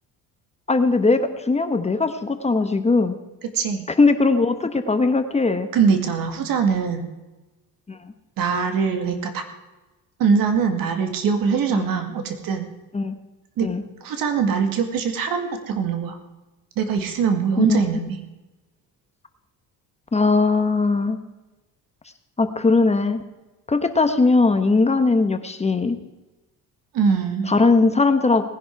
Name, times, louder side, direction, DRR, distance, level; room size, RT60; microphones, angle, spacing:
voice 1, 0.7-3.2 4.0-5.7 7.9-8.0 11.7-11.9 12.9-13.1 13.6-13.8 17.6-17.8 20.1-21.2 22.4-23.2 23.7-26.0 27.5-28.5, left 3 dB, 20° left, 9 dB, 1.0 m, -19 dB
voice 2, 3.5-3.9 5.7-7.1 8.4-9.4 10.2-12.7 13.6-13.7 14.0-16.2 16.8-18.2 26.9-27.5, right 6 dB, 70° right, 6 dB, 2.2 m, -22 dB
18.5 x 10.5 x 4.6 m, 1.1 s
cardioid pair, 105°, 35 cm